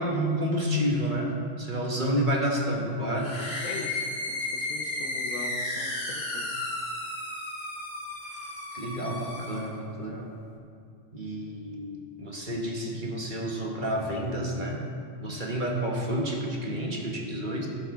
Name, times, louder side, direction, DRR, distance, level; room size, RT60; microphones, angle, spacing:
voice 1, 0.0-3.4 8.7-10.3 11.1-14.8 15.2-17.7, equal, 40° right, -1 dB, 1.4 m, -29 dB
sound 1, 3.2-9.7, left 2 dB, 50° left, 1.6 m, -34 dB
voice 2, 3.6-6.7, left 4 dB, 85° left, 4 dB, 1.4 m, -41 dB
16.5 x 7.2 x 3.7 m, 2.3 s
omnidirectional pair, 1.4 m